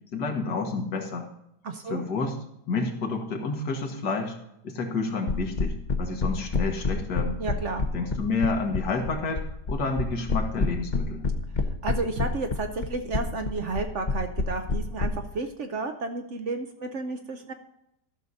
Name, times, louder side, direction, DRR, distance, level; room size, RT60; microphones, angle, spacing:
voice 1, 0.1-1.3 1.9-2.4 2.7-4.4 4.6-7.4 7.9-9.4 9.7-11.2, left 3 dB, 80° left, 3 dB, 2.0 m, -29 dB
voice 2, 1.6-2.1 7.4-7.8 11.8-17.5, right 3 dB, 55° right, 6 dB, 0.9 m, -32 dB
sound 1, 5.3-15.1, left 3 dB, 35° left, 0.8 m, -27 dB
13.5 x 6.3 x 4.0 m, 0.79 s
omnidirectional pair, 1.8 m